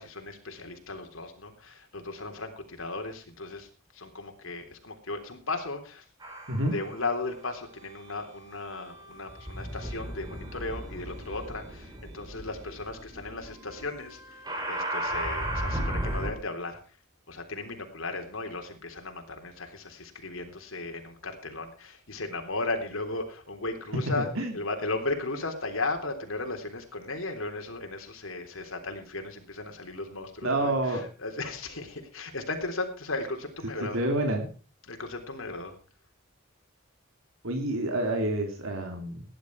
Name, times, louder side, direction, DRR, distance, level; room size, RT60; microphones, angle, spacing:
voice 1, 0.0-6.0 6.6-16.8 17.3-34.0 34.9-35.7, left 2 dB, 75° left, 4 dB, 3.5 m, -36 dB
sound 1, 6.2-7.0 7.8-16.3, right 1 dB, 20° right, 3.6 m, -36 dB
voice 2, 24.2-24.5 30.4-31.0 33.8-34.5 37.4-39.2, right 1 dB, 80° right, 3 dB, 3.0 m, -28 dB
17.5 x 11.0 x 4.7 m, 0.37 s
head